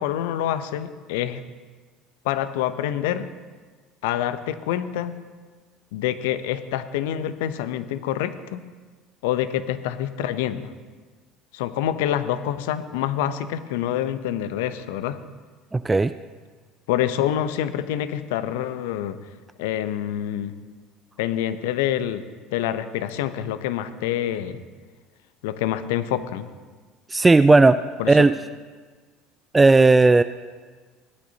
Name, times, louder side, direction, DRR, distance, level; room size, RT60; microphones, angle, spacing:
voice 1, 0.0-1.4 2.2-3.2 4.0-5.1 5.9-8.6 9.2-10.7 11.5-15.2 16.9-19.2 19.6-20.5 21.2-22.2 22.5-24.6 25.4-26.5 28.0-28.3, left 11 dB, 65° left, 12 dB, 0.7 m, -26 dB
voice 2, 15.7-16.1 27.1-27.8 28.1-28.3 29.5-30.2, right 3 dB, 15° right, 12 dB, 0.4 m, -15 dB
17.5 x 12.0 x 2.8 m, 1.4 s
figure-of-eight pair, 65°, 0 cm